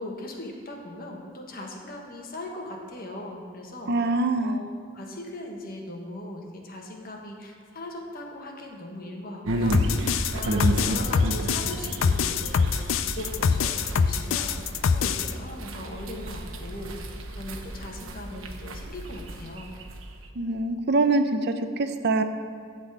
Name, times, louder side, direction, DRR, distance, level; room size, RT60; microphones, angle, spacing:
voice 1, 0.0-3.9 4.4-19.7, left 1 dB, 45° left, 0 dB, 1.4 m, -39 dB
voice 2, 3.9-4.6 20.4-21.5 21.8-22.2, right 3 dB, 55° right, 8 dB, 0.6 m, -24 dB
sound 1, 9.5-20.3, right 1 dB, 85° right, 1.0 m, -32 dB
sound 2, 9.7-15.3, left 6 dB, 75° left, 0.4 m, -24 dB
12.0 x 4.2 x 8.1 m, 2.1 s
head